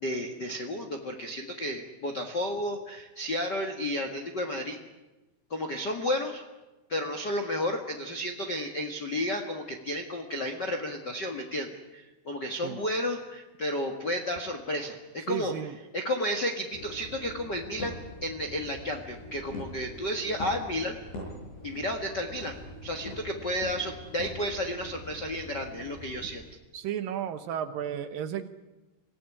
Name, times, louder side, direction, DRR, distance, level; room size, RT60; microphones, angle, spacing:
voice 1, 0.0-4.8 5.5-6.4 6.9-15.5 15.9-21.0 21.6-26.4, left 1 dB, 55° left, 4 dB, 1.2 m, -32 dB
voice 2, 15.3-15.8 26.7-28.5, right 9 dB, 70° right, 10 dB, 2.4 m, -33 dB
sound 1, 16.7-26.5, equal, 80° left, 10.5 m, -43 dB
26.5 x 17.5 x 9.8 m, 1.1 s
omnidirectional pair, 4.8 m